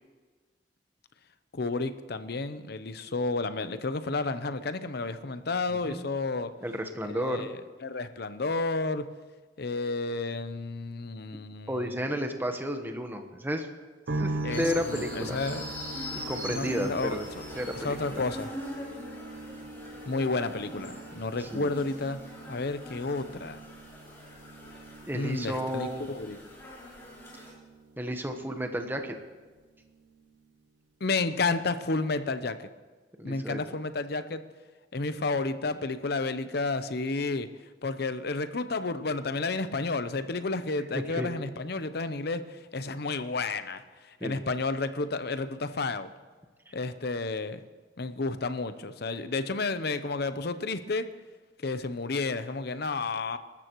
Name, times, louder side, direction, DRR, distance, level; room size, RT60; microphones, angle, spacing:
voice 1, 1.5-6.5 7.1-7.6 7.8-9.1 9.6-12.1 14.4-14.6 14.9-15.7 16.5-17.2 17.8-18.5 20.1-22.2 22.5-23.6 25.1-26.4 31.0-32.7 33.2-34.4 34.9-37.5 37.8-43.8 44.2-46.1 46.7-47.6 48.0-51.1 51.6-53.4, left 3 dB, 60° left, 11 dB, 0.7 m, -31 dB
voice 2, 5.7-6.1 6.6-7.5 11.7-13.7 14.1-15.4 16.1-17.3 17.6-18.2 21.4-21.7 25.1-26.0 27.3-27.4 28.0-29.1 33.2-33.6 41.1-41.3 44.2-44.4 46.7-46.8, equal, 10° right, 5 dB, 1.1 m, -32 dB
sound 1, 14.1-29.3 29.6-30.4, right 2 dB, 75° right, 0.7 m, -41 dB
sound 2, 14.5-27.5, left 1 dB, 15° left, 4.7 m, -42 dB
24.5 x 13.0 x 3.1 m, 1.4 s
head